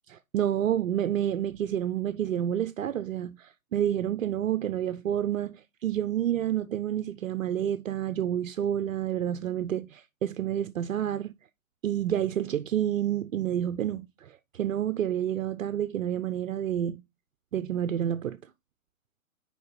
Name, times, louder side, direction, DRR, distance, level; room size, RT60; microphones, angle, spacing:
voice 1, 0.1-11.3 11.8-17.0 17.5-18.4, right 10 dB, 70° right, 0.7 m, -29 dB
6.4 x 5.1 x 4.0 m
hypercardioid pair, 125°, 41 cm